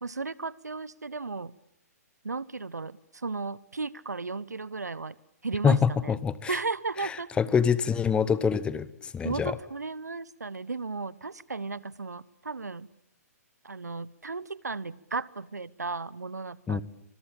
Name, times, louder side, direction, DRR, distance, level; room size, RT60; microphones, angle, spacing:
voice 1, 0.0-1.5 2.2-5.1 5.4-6.2 6.5-7.3 9.2-12.9 13.6-16.8, right 4 dB, 85° right, 21 dB, 1.0 m, -35 dB
voice 2, 5.6-6.6 7.0-9.6 16.7-16.8, left 6 dB, 10° left, 18 dB, 1.0 m, -25 dB
25.0 x 21.5 x 8.7 m, 0.76 s
figure-of-eight pair, 130°, 9 cm